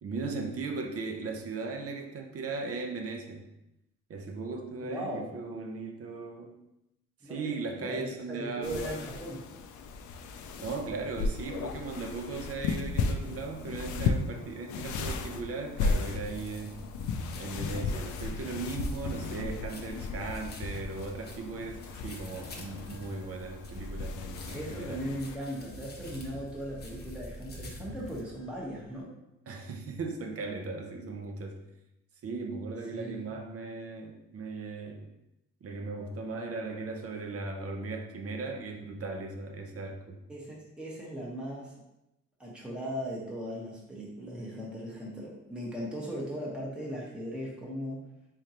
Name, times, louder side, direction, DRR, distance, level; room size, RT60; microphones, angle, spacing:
voice 1, 0.0-3.5 4.1-6.6 7.2-9.0 10.6-16.8 17.4-25.0 29.5-31.6 32.2-35.1 35.6-40.2, right 3 dB, 50° right, 3 dB, 0.7 m, -37 dB
voice 2, 4.8-5.3 7.2-9.4 24.5-29.1 32.9-33.2 40.3-41.7 42.4-48.0, equal, 5° right, -4 dB, 0.9 m, -38 dB
sound 1, 8.6-25.4, left 4 dB, 80° left, 0.5 m, -35 dB
sound 2, 16.2-28.2, left 1 dB, 35° left, 0.8 m, -48 dB
sound 3, 21.6-29.0, equal, 20° right, 1.2 m, -49 dB
3.7 x 3.4 x 2.8 m, 0.88 s
cardioid pair, 90°, 30 cm